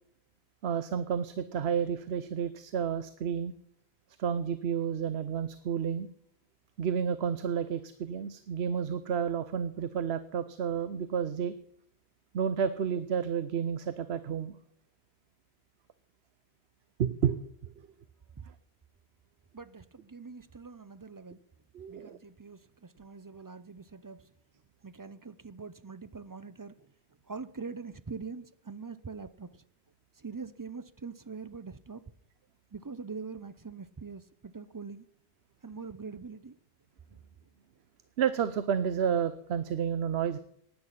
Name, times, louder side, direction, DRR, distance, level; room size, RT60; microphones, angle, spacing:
voice 1, 0.6-3.5 4.2-6.1 6.8-11.5 12.3-14.5 17.0-17.7 21.7-22.2 38.2-40.4, right 7 dB, 85° right, 1.0 m, -31 dB
voice 2, 19.5-21.4 21.9-24.3 24.8-26.9 27.3-29.6 30.2-32.0 32.7-35.1 35.6-36.6, right 5 dB, 30° right, 0.4 m, -43 dB
16.0 x 10.0 x 5.7 m
omnidirectional pair, 1.1 m